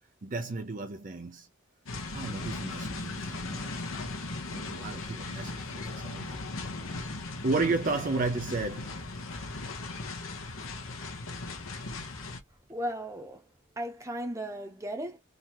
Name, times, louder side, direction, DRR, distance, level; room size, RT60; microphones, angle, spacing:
voice 1, 0.2-1.5 2.1-3.9 4.5-6.5 7.4-9.5, right 3 dB, 40° right, 0.5 m, -33 dB
sound 1, 1.9-12.4, left 3 dB, 90° left, 1.1 m, -38 dB
voice 2, 12.7-13.4 13.8-15.2, equal, 15° right, 0.9 m, -36 dB
3.8 x 2.8 x 3.0 m
head